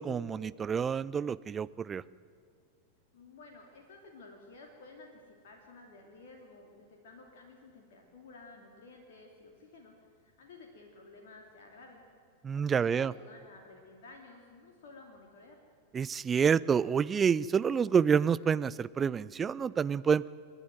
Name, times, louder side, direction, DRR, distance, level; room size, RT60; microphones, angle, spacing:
voice 1, 0.0-2.0 12.4-13.1 15.9-20.3, right 6 dB, 20° right, 19 dB, 0.4 m, -28 dB
voice 2, 3.1-9.9 10.2-12.0 12.5-15.6, left 3 dB, 55° left, 1 dB, 2.8 m, -53 dB
28.0 x 11.0 x 9.3 m, 2.3 s
figure-of-eight pair, 90°, 0 cm